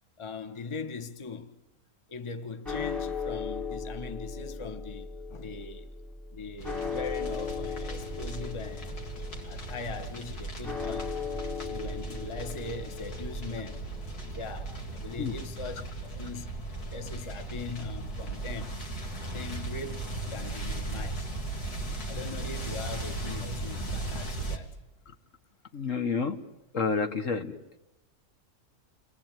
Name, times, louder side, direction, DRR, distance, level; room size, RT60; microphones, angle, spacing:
voice 1, 0.2-1.6 2.1-5.9 6.3-8.9 9.5-11.1 11.7-13.9 14.3-16.6 16.9-18.8 19.3-21.3 22.1-24.8, left 4 dB, 20° left, 1.2 m, -40 dB
sound 1, 2.7-16.9, left 5 dB, ahead, 1.7 m, -38 dB
sound 2, 6.6-24.6, right 2 dB, 75° left, 3.4 m, -37 dB
voice 2, 25.7-26.4 26.7-27.6, left 5 dB, 55° left, 1.7 m, -29 dB
29.5 x 22.0 x 9.1 m
omnidirectional pair, 1.6 m